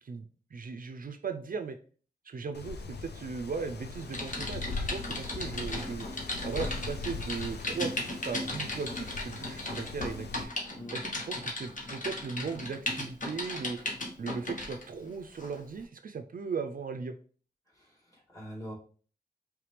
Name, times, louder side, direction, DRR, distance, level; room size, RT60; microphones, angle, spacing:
voice 1, 0.0-1.8 2.2-6.1 6.4-10.5 10.9-13.8 14.2-17.1, right 5 dB, 55° right, 7 dB, 0.4 m, -37 dB
Wind, 2.5-10.4, left 4 dB, 85° left, 0.6 m, -40 dB
Typing, 4.1-14.8 15.4-15.6, left 2 dB, 50° left, 1.2 m, -36 dB
voice 2, 17.7-18.7, equal, 20° left, -2 dB, 2.1 m, -44 dB
4.9 x 3.2 x 3.1 m, 0.41 s
wide cardioid pair, 90°, 17 cm